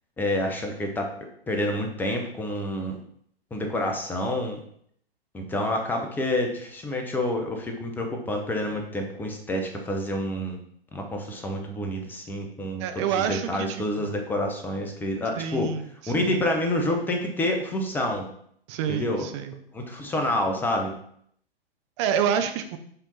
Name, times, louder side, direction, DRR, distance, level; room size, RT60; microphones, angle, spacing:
voice 1, 0.2-1.1 1.5-3.0 3.5-4.6 5.3-10.6 10.9-15.7 16.1-18.3 18.9-19.3 19.7-20.9, left 1 dB, 5° left, 3 dB, 0.7 m, -28 dB
voice 2, 12.8-14.1 15.4-16.3 18.7-19.5 22.0-22.8, right 8 dB, 30° right, 8 dB, 0.6 m, -28 dB
5.7 x 3.4 x 5.4 m, 0.67 s
figure-of-eight pair, 120°, 30 cm